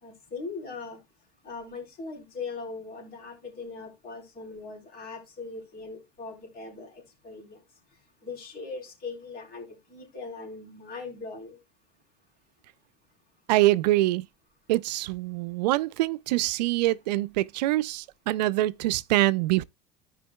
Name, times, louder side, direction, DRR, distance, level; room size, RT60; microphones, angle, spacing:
voice 1, 0.0-1.0 1.4-7.6 8.2-11.6, left 4 dB, 45° left, 3.9 m, -40 dB
voice 2, 13.5-14.3 14.7-19.6, right 17 dB, 90° right, 0.4 m, -24 dB
15.0 x 5.1 x 2.2 m
supercardioid pair, 105°, 21 cm